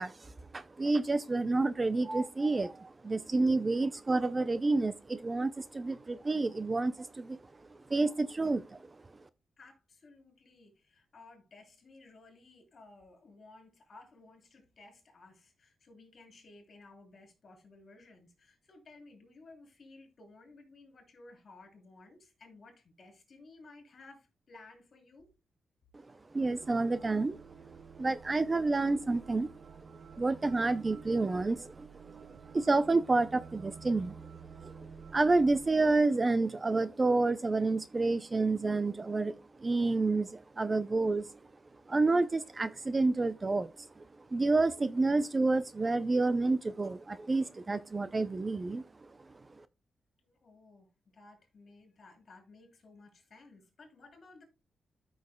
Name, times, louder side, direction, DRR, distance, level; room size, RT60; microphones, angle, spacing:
voice 1, 0.0-7.4 7.9-8.9 26.3-27.4 27.9-29.5 29.9-34.3 34.6-41.3 41.9-44.0 44.3-48.9 49.6-49.7, right 3 dB, 25° right, 0.4 m, -29 dB
voice 2, 9.6-25.3 50.2-54.4, left 3 dB, 45° left, 3.7 m, -56 dB
sound 1, 26.4-36.0, right 6 dB, 80° right, 0.8 m, -51 dB
13.5 x 6.3 x 2.2 m
wide cardioid pair, 135°, 0 cm